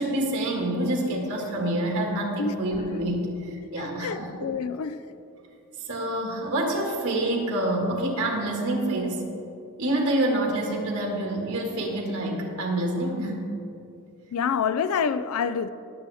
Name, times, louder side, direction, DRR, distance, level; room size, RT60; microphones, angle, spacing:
voice 1, 0.0-4.3 5.9-9.3 9.8-13.5, right 1 dB, 75° right, 1.9 m, -27 dB
voice 2, 3.8-5.0 14.3-15.7, left 6 dB, 70° left, 0.4 m, -27 dB
17.5 x 7.5 x 3.5 m
head